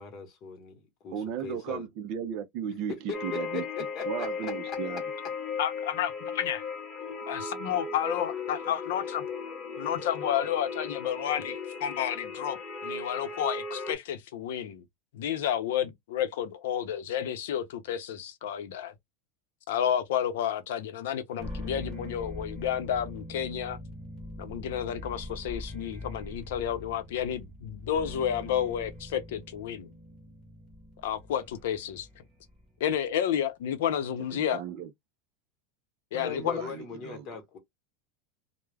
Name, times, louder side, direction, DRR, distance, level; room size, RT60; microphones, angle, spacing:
voice 1, 0.0-1.9 2.9-4.8 36.2-37.6, left 5 dB, 30° left, 1.0 m, -40 dB
voice 2, 1.1-3.6 4.0-5.0 34.3-34.9 36.1-37.3, right 9 dB, 40° right, 0.4 m, -36 dB
sound 1, 3.1-13.9, left 5 dB, 15° left, 0.6 m, -36 dB
voice 3, 5.6-6.6 7.3-9.2 9.8-14.8 15.1-18.9 19.7-23.8 24.4-29.9 31.0-32.1 32.8-34.6 36.1-36.6, left 9 dB, 75° left, 0.6 m, -31 dB
sound 2, 21.4-32.7, left 1 dB, 5° right, 1.0 m, -43 dB
2.3 x 2.1 x 3.2 m
supercardioid pair, 170°, 0 cm